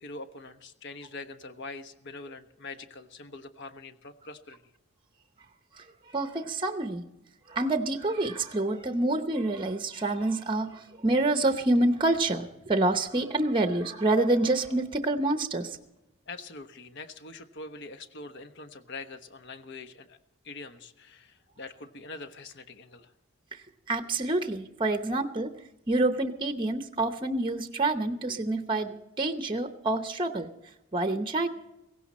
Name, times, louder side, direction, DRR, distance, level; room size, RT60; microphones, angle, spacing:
voice 1, 0.0-4.6 16.3-20.2 20.4-23.1, left 3 dB, 55° left, 8 dB, 1.2 m, -44 dB
voice 2, 5.7-7.0 7.5-15.8 23.5-25.5 25.9-30.5 30.9-31.5, right 2 dB, 25° right, 7 dB, 0.8 m, -27 dB
17.0 x 16.0 x 4.2 m, 0.90 s
head